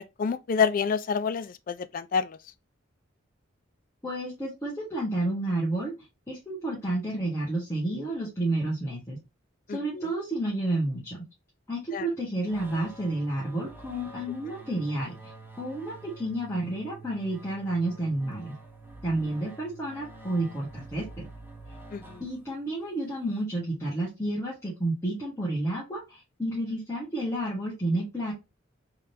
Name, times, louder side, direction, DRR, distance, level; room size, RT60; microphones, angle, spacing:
voice 1, 0.0-2.4 9.7-10.1 11.9-12.1 21.9-22.2, left 6 dB, 45° left, 0.3 m, -28 dB
voice 2, 4.0-5.9 6.3-9.2 9.7-11.2 11.7-15.3 15.6-18.5 19.0-21.3 22.2-28.3, right 1 dB, 15° left, 1.4 m, -30 dB
hi norm - hi norm, 12.5-22.7, right 2 dB, 10° right, 0.8 m, -47 dB
3.7 x 3.3 x 2.7 m
head